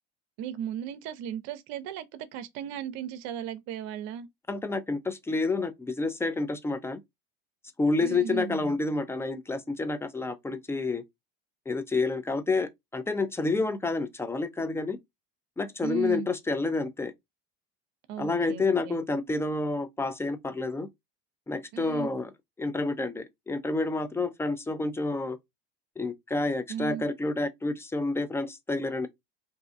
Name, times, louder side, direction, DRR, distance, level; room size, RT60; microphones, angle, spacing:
voice 1, 0.4-4.3 8.0-8.8 15.8-16.3 18.1-19.0 21.7-22.1 26.7-27.1, right 9 dB, 65° right, 0.6 m, -36 dB
voice 2, 4.5-7.0 7.8-11.0 11.7-15.0 15.6-17.1 18.2-20.9 21.5-22.3 22.6-25.4 26.0-29.1, left 3 dB, 10° left, 0.4 m, -29 dB
2.6 x 2.3 x 2.5 m
supercardioid pair, 95°, 30 cm